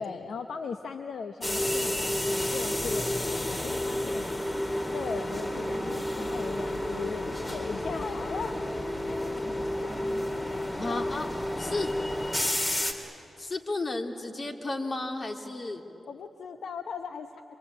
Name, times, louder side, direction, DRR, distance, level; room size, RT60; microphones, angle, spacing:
voice 1, 0.0-4.3 4.9-8.6 8.8-10.1 10.4-11.1 11.5-11.8 16.1-17.4, left 5 dB, 80° left, 7 dB, 0.8 m, -39 dB
sound 1, 1.4-12.9, left 1 dB, 30° left, 3.6 m, -31 dB
voice 2, 10.8-11.3 11.6-11.9 13.4-15.8, left 2 dB, 50° left, 3 dB, 2.8 m, -33 dB
28.0 x 24.0 x 8.6 m, 2.8 s
supercardioid pair, 45°, 0 cm